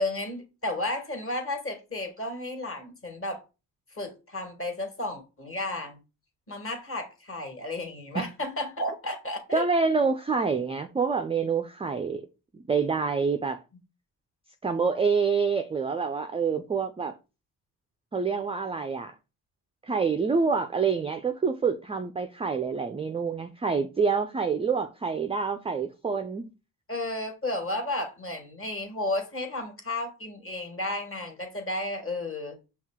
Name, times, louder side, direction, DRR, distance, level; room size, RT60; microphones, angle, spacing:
voice 1, 0.0-3.4 3.9-6.0 6.5-9.6 26.9-32.6, left 2 dB, 30° left, 1.6 m, -33 dB
voice 2, 9.5-12.3 12.5-13.6 14.6-17.1 18.1-19.1 19.8-26.5, right 5 dB, 15° right, 0.3 m, -27 dB
5.5 x 2.3 x 3.5 m
supercardioid pair, 60°, 43 cm